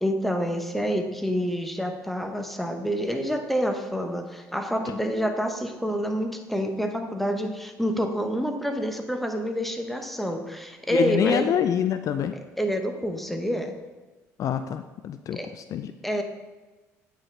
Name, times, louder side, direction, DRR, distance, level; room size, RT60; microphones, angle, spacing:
voice 1, 0.0-11.5 12.3-13.7 15.3-15.5 16.0-16.2, equal, ahead, 5 dB, 0.9 m, -28 dB
voice 2, 10.9-12.3 14.4-15.9, left 9 dB, 55° left, 10 dB, 0.4 m, -26 dB
9.0 x 4.9 x 3.3 m, 1.2 s
supercardioid pair, 80°, 7 cm